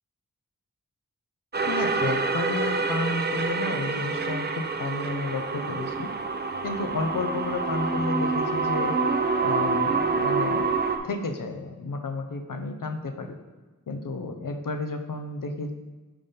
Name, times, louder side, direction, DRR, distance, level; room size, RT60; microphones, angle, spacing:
sound 1, 1.5-11.0, right 4 dB, 30° right, 0.4 m, -27 dB
voice 1, 1.7-6.1 6.6-8.9 9.4-10.7 11.0-13.4 13.9-15.7, left 3 dB, 70° left, 6 dB, 0.6 m, -32 dB
5.6 x 3.5 x 5.3 m, 1.2 s
wide cardioid pair, 55°, 34 cm